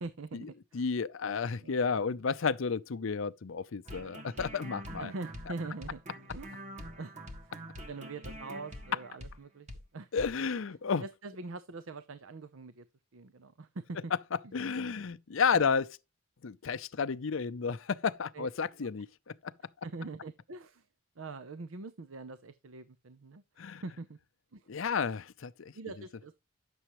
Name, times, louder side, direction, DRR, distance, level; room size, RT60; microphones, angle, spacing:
voice 1, 0.0-0.8 1.6-2.0 5.0-6.0 6.3-6.6 7.0-7.1 7.9-9.7 9.9-10.1 11.0-12.8 13.1-14.1 15.5-15.7 18.3-18.5 18.8-18.9 19.8-20.8 21.2-23.4 23.8-24.2 24.5-24.6 25.7-26.3, right 3 dB, 75° right, 0.7 m, -43 dB
voice 2, 0.7-5.1 10.1-11.0 14.3-16.0 16.4-19.5 23.6-23.8 24.7-25.7, left 5 dB, 70° left, 0.6 m, -32 dB
sound 1, 3.9-9.4 9.7-9.8 10.2-10.3, equal, 35° right, 1.6 m, -45 dB
10.0 x 7.0 x 3.0 m
head